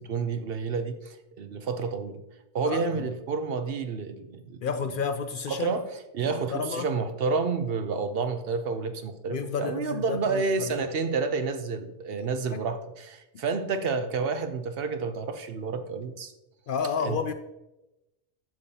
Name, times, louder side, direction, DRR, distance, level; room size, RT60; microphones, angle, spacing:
voice 1, 0.0-2.2 2.5-5.0 5.5-5.9 6.1-16.3 17.0-17.2, right 4 dB, 60° right, 0.8 m, -30 dB
voice 2, 2.6-3.1 4.6-5.8 6.2-6.9 9.3-10.7 12.5-12.6 16.7-17.3, left 6 dB, 60° left, 0.6 m, -31 dB
10.5 x 6.9 x 2.8 m
omnidirectional pair, 1.2 m